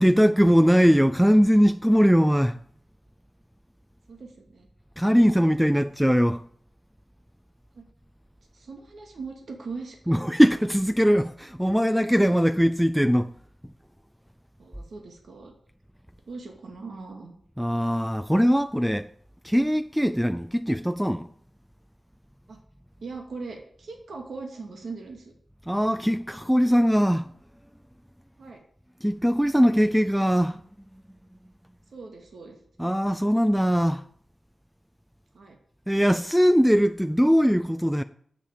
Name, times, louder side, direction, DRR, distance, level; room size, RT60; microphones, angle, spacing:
voice 1, 0.0-2.6 5.0-6.4 10.1-13.3 17.6-19.1 19.4-21.3 25.7-27.3 29.0-30.6 32.8-34.0 35.9-38.0, equal, ahead, 0.4 m, -21 dB
voice 2, 4.1-4.7 7.7-7.8 8.5-10.2 14.6-15.5 16.3-17.4 22.5-22.6 23.0-25.3 28.4-28.6 31.9-32.6 35.3-35.6, right 4 dB, 65° right, 2.3 m, -40 dB
10.5 x 7.5 x 8.6 m
wide cardioid pair, 140°, 0 cm